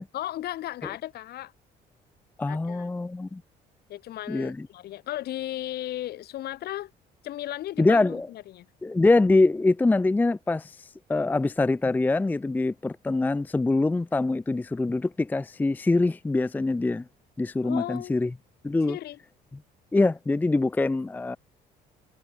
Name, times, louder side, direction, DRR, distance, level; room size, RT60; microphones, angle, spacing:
voice 1, 0.1-1.5 2.5-2.9 3.9-6.9 7.2-8.7 17.6-18.2 18.9-19.2, left 14 dB, 70° left, 4.9 m, -35 dB
voice 2, 2.4-3.4 4.3-4.7 7.8-8.3 8.8-17.0 17.4-18.3 18.6-19.0 19.9-21.4, left 2 dB, 10° left, 0.5 m, -24 dB
cardioid pair, 110°, 17 cm